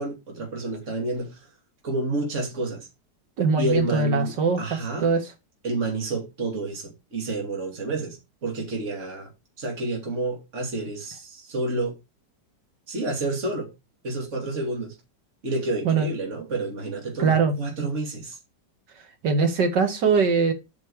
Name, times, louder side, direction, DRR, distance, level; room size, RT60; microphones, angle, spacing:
voice 1, 0.0-1.4 1.8-2.9 3.6-5.1 5.6-9.3 9.6-11.9 12.9-13.7 14.0-15.0 15.4-18.4, right 2 dB, 40° right, 2.9 m, -29 dB
voice 2, 3.4-5.2 15.8-16.1 17.2-17.5 19.2-20.5, right 4 dB, 75° right, 2.2 m, -22 dB
8.5 x 5.8 x 4.8 m
omnidirectional pair, 1.9 m